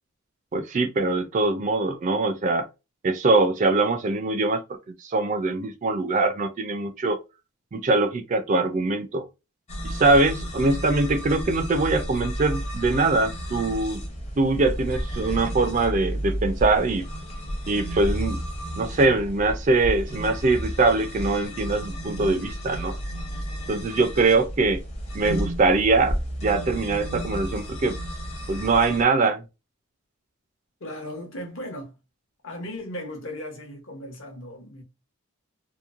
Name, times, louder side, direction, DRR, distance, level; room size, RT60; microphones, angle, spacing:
voice 1, 0.5-2.7 3.0-4.6 5.0-7.2 7.7-9.2 9.8-14.0 14.4-17.0 17.7-18.4 18.8-23.0 23.7-24.8 25.1-28.0 28.5-29.4, right 3 dB, 35° right, 0.3 m, -22 dB
sound 1, 9.7-29.0, equal, 30° left, 0.6 m, -32 dB
voice 2, 30.8-32.0 32.4-34.8, left 1 dB, 60° left, 0.9 m, -37 dB
2.9 x 2.1 x 2.4 m
head